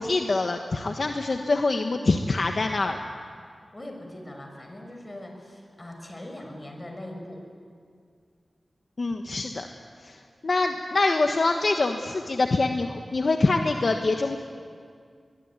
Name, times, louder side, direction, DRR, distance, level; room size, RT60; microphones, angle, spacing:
voice 1, 0.0-3.0 9.0-9.7 10.0-10.2 10.4-14.4, left 3 dB, 60° left, 4 dB, 1.3 m, -25 dB
voice 2, 3.7-7.4, left 1 dB, 30° left, 3 dB, 6.2 m, -41 dB
22.5 x 22.5 x 9.7 m, 2.2 s
wide cardioid pair, 60°, 0 cm